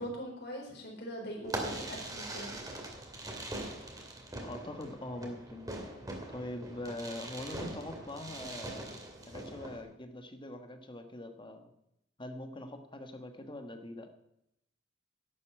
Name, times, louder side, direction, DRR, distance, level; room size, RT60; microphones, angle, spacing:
voice 1, 0.0-2.5, equal, 60° left, 0 dB, 4.3 m, -41 dB
Fireworks, 1.4-9.8, right 1 dB, 20° right, 2.4 m, -42 dB
voice 2, 4.4-5.7 6.3-9.0 9.3-11.7 12.2-14.1, left 1 dB, 25° left, 7 dB, 1.4 m, -43 dB
11.5 x 8.3 x 8.9 m, 0.81 s
head